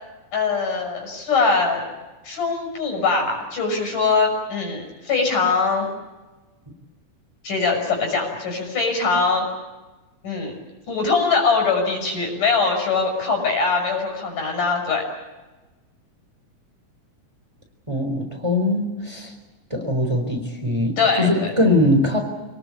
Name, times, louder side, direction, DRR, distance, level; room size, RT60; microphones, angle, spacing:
voice 1, 0.3-1.9 2.2-5.9 7.4-9.5 10.2-10.5 10.9-15.1 21.0-21.5, left 4 dB, 90° left, 3 dB, 7.6 m, -22 dB
voice 2, 17.9-19.3 19.7-22.2, left 1 dB, 10° right, 4 dB, 4.1 m, -21 dB
28.0 x 19.0 x 8.7 m, 1.2 s
omnidirectional pair, 3.6 m